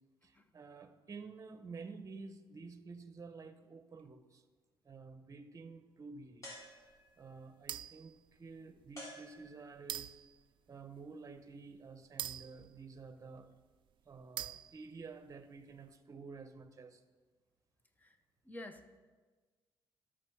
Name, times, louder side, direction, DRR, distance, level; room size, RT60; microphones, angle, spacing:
voice 1, 0.2-4.4 4.8-6.5 7.2-10.1 10.7-13.5 14.1-17.0, right 4 dB, 35° right, 10 dB, 0.9 m, -51 dB
sound 1, 6.4-7.3 9.0-9.9, equal, 35° left, 3.7 m, -51 dB
sound 2, 7.7-8.2 8.8-8.9 9.9-10.4 12.2-13.4 14.4-15.0, right 11 dB, 60° right, 0.3 m, -43 dB
voice 2, 18.4-19.0, left 1 dB, 15° left, 9 dB, 0.9 m, -49 dB
13.0 x 6.4 x 4.6 m, 1.4 s
cardioid pair, 95°, 10 cm